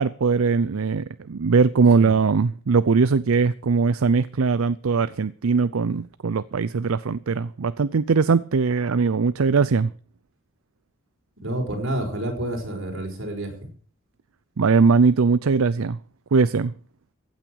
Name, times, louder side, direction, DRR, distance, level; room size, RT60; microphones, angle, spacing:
voice 1, 0.0-9.9 14.6-16.0 16.3-16.7, right 4 dB, 80° right, 0.5 m, -20 dB
voice 2, 11.4-13.5, right 1 dB, 65° right, 5.0 m, -29 dB
15.5 x 9.0 x 6.4 m
head